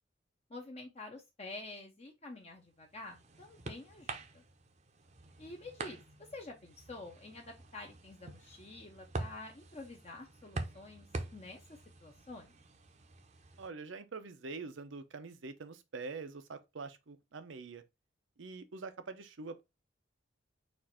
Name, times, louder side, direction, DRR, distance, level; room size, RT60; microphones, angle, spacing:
voice 1, 0.5-4.4 5.4-12.6, left 2 dB, 35° left, 0.7 m, -49 dB
sound 1, 2.6-13.7, right 2 dB, 40° right, 0.6 m, -46 dB
voice 2, 13.6-17.8 18.4-19.6, right 4 dB, 80° right, 0.6 m, -45 dB
4.4 x 2.5 x 4.2 m
head